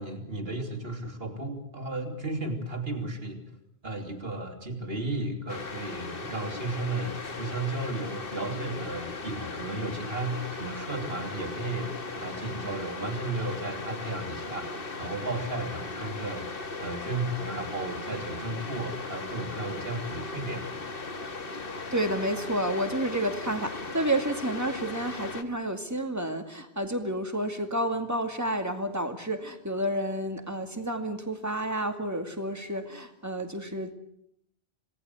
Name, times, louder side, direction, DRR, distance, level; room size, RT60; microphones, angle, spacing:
voice 1, 0.0-3.4 3.8-16.5 16.8-20.7, right 2 dB, 65° right, 4 dB, 3.4 m, -34 dB
sound 1, 5.5-25.4, left 3 dB, 60° left, 1.7 m, -38 dB
voice 2, 21.9-33.9, right 1 dB, 15° right, 6 dB, 2.3 m, -30 dB
27.0 x 18.5 x 8.2 m, 0.76 s
omnidirectional pair, 1.1 m